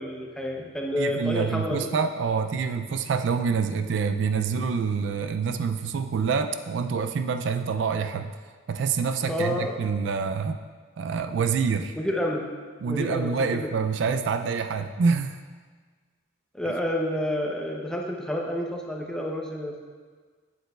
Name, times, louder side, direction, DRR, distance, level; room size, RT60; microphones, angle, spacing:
voice 1, 0.0-1.9 9.3-9.7 12.0-12.4 12.9-13.7 16.5-19.8, left 1 dB, 5° left, 0 dB, 0.6 m, -29 dB
voice 2, 1.0-8.3 8.7-10.6 11.0-12.0 12.8-15.4, right 5 dB, 65° right, 8 dB, 0.3 m, -26 dB
8.7 x 7.8 x 2.3 m, 1.5 s
head